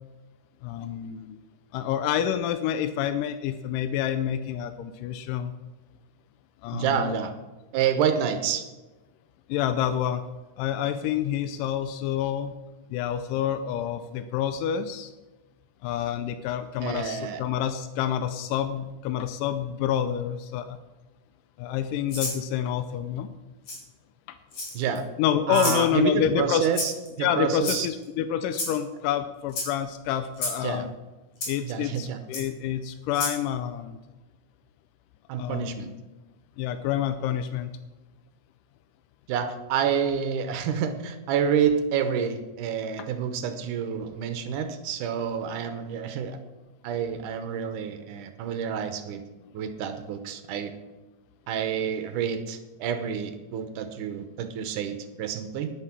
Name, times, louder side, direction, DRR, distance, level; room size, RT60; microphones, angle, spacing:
voice 1, 0.6-1.4 1.7-5.5 6.6-7.2 9.5-10.2 10.6-12.6 12.9-15.1 15.8-20.8 21.6-23.3 24.3-24.4 25.2-26.7 27.2-30.9 31.5-34.0 35.4-36.0 36.6-37.7, left 10 dB, 90° left, 10 dB, 2.2 m, -28 dB
voice 2, 6.7-7.3 7.7-8.7 16.8-17.4 24.7-25.0 25.5-27.9 30.6-30.9 31.6-32.2 35.3-35.9 39.3-46.4 46.8-49.2 49.5-50.7 51.5-55.7, right 7 dB, 75° right, 9 dB, 2.3 m, -28 dB
Rattle (instrument), 22.1-22.4 23.7-23.8 24.5-25.0 25.5-25.8 26.7-27.1 27.6-28.0 28.5-28.8 29.5-29.7 30.4-30.6 31.4-31.5 32.3-32.4 33.1-33.4, left 2 dB, 50° left, 4.5 m, -30 dB
10.5 x 9.7 x 5.9 m, 1.1 s
omnidirectional pair, 3.8 m